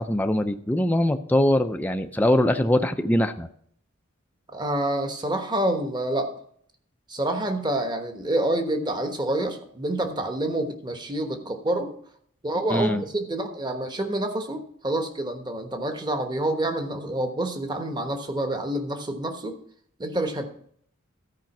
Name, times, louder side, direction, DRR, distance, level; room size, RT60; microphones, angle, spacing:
voice 1, 0.0-3.5 12.7-13.0, left 1 dB, 10° left, 7 dB, 0.5 m, -22 dB
voice 2, 4.5-6.3 7.1-11.9 12.4-19.6 20.0-20.5, right 1 dB, 20° right, 5 dB, 1.2 m, -27 dB
13.0 x 5.1 x 6.0 m, 0.63 s
head